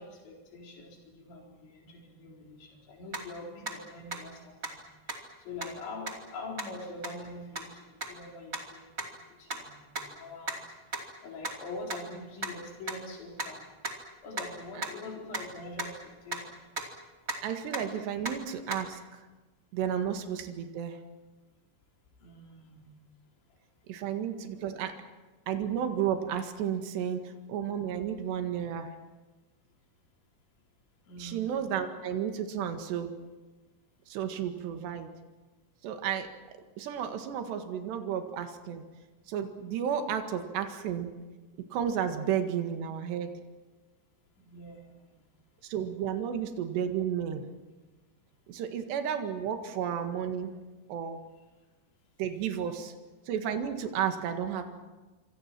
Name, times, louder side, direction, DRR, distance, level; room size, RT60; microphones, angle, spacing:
voice 1, 0.0-13.6 14.2-16.6 22.2-22.9 23.5-23.6 31.0-31.5 44.4-45.2, left 2 dB, 75° left, -1 dB, 6.7 m, -44 dB
sound 1, 3.1-3.2 3.7-3.8 4.1-4.2 4.6-4.7 5.1-5.2 5.6-5.7 6.1-6.2 6.6-6.7 7.0-7.1 7.6-7.7 8.0-8.1 8.5-8.6 9.0-9.1 9.5-9.6 10.0-10.1 10.4-10.6 10.9-11.0 11.4-11.5 11.9-12.0 12.4-12.5 12.9-13.0 13.4-13.5 13.8-13.9 14.3-14.4 14.8-14.9 15.3-15.4 15.8-15.9 16.3-16.4 16.8-16.9 17.3-17.4 17.7-17.8 18.2-18.3 18.7-18.8, right 2 dB, 20° right, 2.2 m, -34 dB
voice 2, 17.4-19.3 19.7-21.0 23.9-25.0 25.5-28.9 31.2-33.1 34.1-35.1 35.8-36.3 36.8-38.8 39.3-41.1 41.7-43.3 45.6-47.4 48.5-50.5 50.9-51.2 52.2-52.9 53.3-54.6, right 8 dB, 70° right, 6 dB, 3.9 m, -32 dB
26.5 x 26.0 x 6.1 m, 1.2 s
omnidirectional pair, 5.2 m